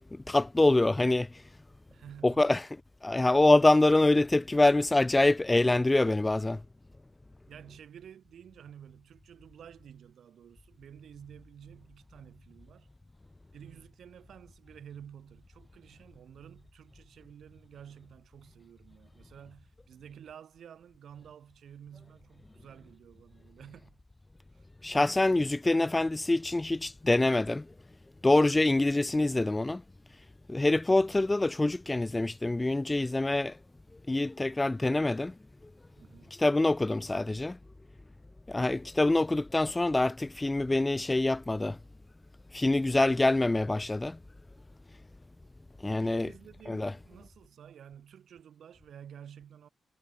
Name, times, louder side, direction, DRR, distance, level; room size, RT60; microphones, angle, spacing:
voice 1, 0.1-1.3 2.2-2.6 3.0-6.6 24.8-27.7 28.2-29.8 30.5-33.6 34.1-35.3 36.4-37.6 38.5-41.8 42.5-44.2 45.8-46.3 46.7-46.9, left 2 dB, 10° left, 0.4 m, -25 dB
voice 2, 1.9-2.6 7.5-12.9 13.5-24.0 24.5-24.7 36.0-36.4 46.0-49.7, right 9 dB, 65° right, 6.8 m, -51 dB
wide cardioid pair, 170°, 0 cm